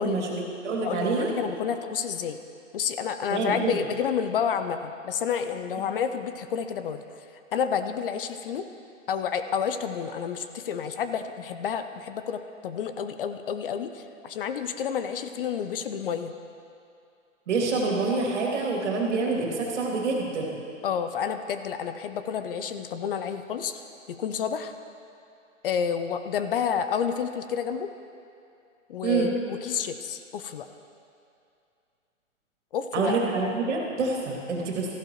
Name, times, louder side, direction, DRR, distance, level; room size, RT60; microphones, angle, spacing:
voice 1, 0.0-1.3 3.3-3.8 17.5-20.6 29.0-29.3 32.9-34.9, right 4 dB, 60° right, -1 dB, 2.5 m, -27 dB
voice 2, 0.8-2.4 2.7-7.0 7.5-8.6 9.1-16.3 20.8-23.8 24.1-24.7 25.6-27.9 28.9-30.7 32.7-33.2, left 7 dB, 45° left, 9 dB, 0.5 m, -30 dB
14.5 x 11.0 x 3.0 m, 2.5 s
hypercardioid pair, 135°, 39 cm